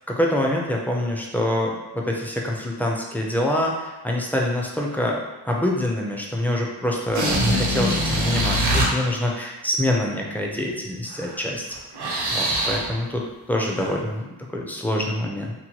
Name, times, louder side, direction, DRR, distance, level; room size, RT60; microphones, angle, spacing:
voice 1, 0.1-11.6 12.3-15.5, left 1 dB, 5° left, -1 dB, 0.4 m, -25 dB
sound 1, 7.1-8.9 11.1-11.3 11.7-12.9 13.7-13.9, right 1 dB, 70° right, 0.8 m, -23 dB
2.9 x 2.1 x 2.9 m, 1.1 s
cardioid pair, 80°, 40 cm